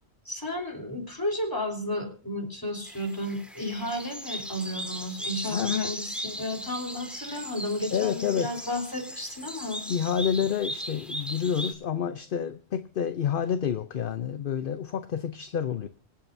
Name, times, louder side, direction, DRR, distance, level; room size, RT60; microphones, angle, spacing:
voice 1, 0.3-9.8, left 1 dB, 20° left, 2 dB, 3.7 m, -33 dB
sound 1, 2.9-11.7, equal, ahead, 1.9 m, -38 dB
voice 2, 5.5-5.9 7.9-8.7 9.9-15.9, left 8 dB, 55° left, 10 dB, 0.9 m, -29 dB
25.5 x 8.7 x 2.7 m, 0.40 s
omnidirectional pair, 1.1 m